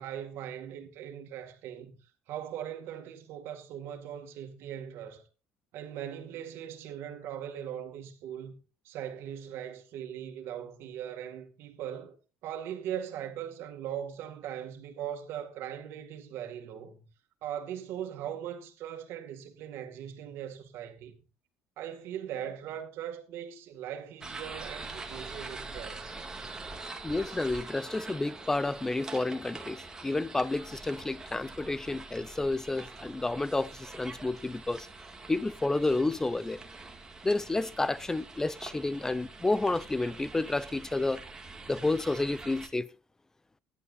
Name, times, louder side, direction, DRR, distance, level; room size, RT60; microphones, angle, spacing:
voice 1, 0.0-2.0 2.3-5.2 5.7-8.6 8.8-12.1 12.4-17.0 17.4-21.1 21.8-26.2, right 10 dB, 70° right, 2.1 m, -40 dB
sound 1, 24.2-42.7, right 3 dB, 15° right, 2.0 m, -44 dB
voice 2, 27.0-34.9 35.3-36.6 37.2-41.2 41.7-42.9, left 2 dB, 10° left, 0.6 m, -30 dB
17.0 x 11.0 x 2.6 m
cardioid pair, 105°, 4 cm